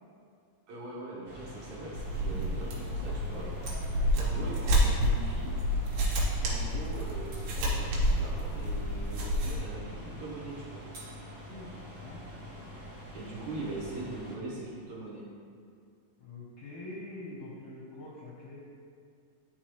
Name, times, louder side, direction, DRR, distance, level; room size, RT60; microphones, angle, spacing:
voice 1, 0.7-3.5 4.2-5.5 6.3-10.8 13.1-15.2, right 2 dB, 65° right, -5 dB, 2.2 m, -41 dB
sound 1, 1.2-14.4, equal, 45° right, 1.8 m, -45 dB
sound 2, 1.9-9.6, equal, 90° right, 3.1 m, -29 dB
voice 2, 3.3-4.1 5.9-6.1 11.5-11.7 12.0-12.7 16.2-18.6, left 2 dB, 65° left, -6 dB, 1.6 m, -46 dB
11.5 x 4.6 x 3.1 m, 2.3 s
omnidirectional pair, 4.0 m